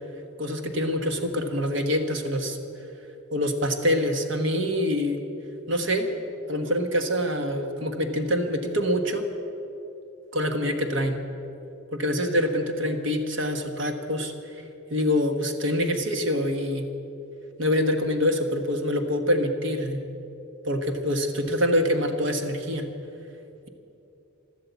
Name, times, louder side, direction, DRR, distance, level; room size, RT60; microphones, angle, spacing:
voice 1, 0.4-2.6 3.3-5.2 5.7-6.1 6.5-9.3 10.3-11.2 11.9-14.3 14.9-16.8 17.6-20.0 20.6-22.9, equal, 60° right, 6 dB, 1.4 m, -25 dB
12.5 x 12.5 x 8.2 m, 2.9 s
head